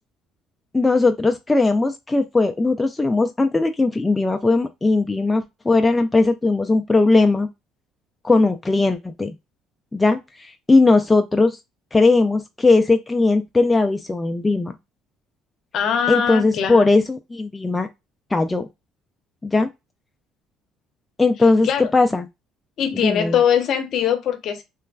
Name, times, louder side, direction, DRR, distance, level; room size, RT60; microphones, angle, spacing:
voice 1, 0.7-7.5 8.2-9.3 9.9-11.6 11.9-14.8 16.1-17.9 18.3-18.7 19.4-19.7 21.2-21.7 21.9-22.3 23.0-23.4, left 3 dB, 15° left, 0.3 m, -18 dB
voice 2, 15.7-16.9 21.6-21.9 22.8-24.6, left 8 dB, 60° left, 0.7 m, -21 dB
3.1 x 2.2 x 2.3 m
supercardioid pair, 90°, 0 cm